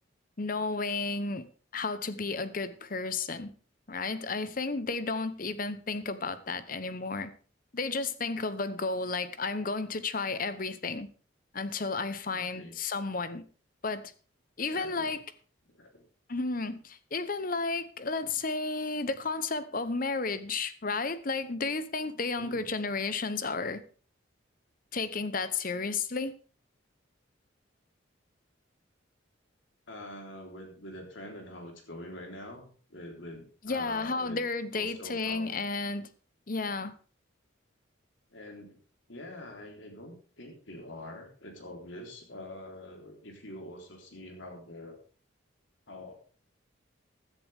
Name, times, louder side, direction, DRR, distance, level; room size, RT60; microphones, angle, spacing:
voice 1, 0.4-3.5 3.9-7.3 7.7-11.1 11.5-13.4 13.8-14.1 14.6-15.2 16.3-23.8 24.9-26.3 33.6-36.1 36.5-36.9, left 3 dB, 45° left, 0.9 m, -32 dB
voice 2, 12.3-12.8 14.7-15.2 15.7-16.1 18.2-18.4 22.4-22.7 29.9-34.4 34.7-35.6 38.3-38.8 39.1-45.0 45.9-46.1, left 1 dB, 70° left, 3.7 m, -45 dB
16.0 x 10.5 x 3.6 m
head